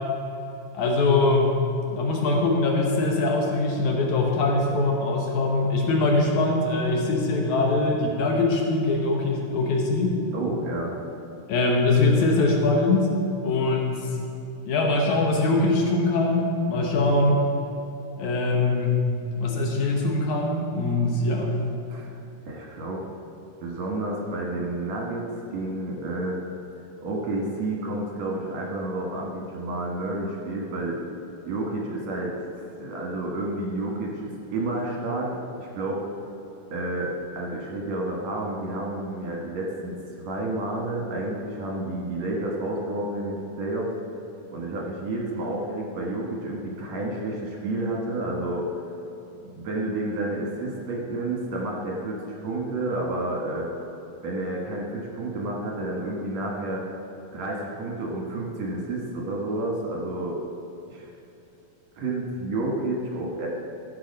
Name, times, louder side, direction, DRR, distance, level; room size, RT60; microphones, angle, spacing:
voice 1, 0.7-1.6 1.9-10.2 11.5-13.1 13.4-14.1 14.7-17.4 18.2-19.0 19.4-21.6, left 2 dB, 70° left, 0 dB, 1.9 m, -22 dB
voice 2, 10.3-10.9 21.9-22.2 22.4-23.0 23.6-26.4 27.0-31.0 31.5-36.0 36.7-43.9 44.5-48.7 49.4-53.7 54.2-56.8 57.3-60.4 60.9-61.1 62.0-63.5, right 2 dB, 60° right, -2 dB, 2.1 m, -30 dB
14.5 x 6.5 x 5.3 m, 2.8 s
omnidirectional pair, 4.6 m